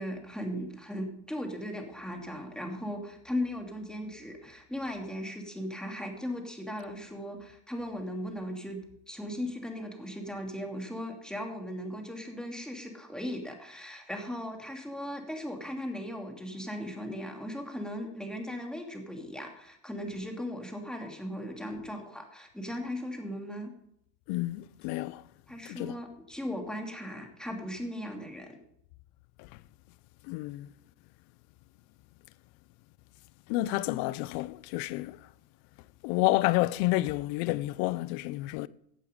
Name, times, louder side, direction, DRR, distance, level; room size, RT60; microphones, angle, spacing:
voice 1, 0.0-8.8 9.1-23.7 25.5-28.6, equal, ahead, 2.7 m, -37 dB
voice 2, 24.3-25.2 25.7-26.0 29.4-29.5 30.2-30.7 33.5-35.2 36.0-38.7, left 18 dB, 65° left, 0.7 m, -29 dB
15.5 x 8.3 x 5.3 m
supercardioid pair, 100°, 41 cm